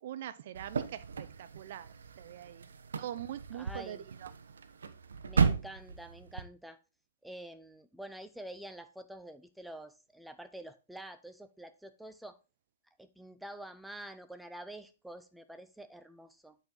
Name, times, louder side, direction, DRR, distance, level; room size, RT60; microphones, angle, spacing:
voice 1, 0.0-2.7 3.0-4.3, right 11 dB, 55° right, 0.6 m, -43 dB
sound 1, 0.5-6.4, right 5 dB, 90° right, 0.8 m, -35 dB
voice 2, 3.5-4.0 5.3-6.8 7.2-12.4 13.0-16.6, right 1 dB, ahead, 0.5 m, -47 dB
8.7 x 4.2 x 3.7 m
hypercardioid pair, 150°, 0 cm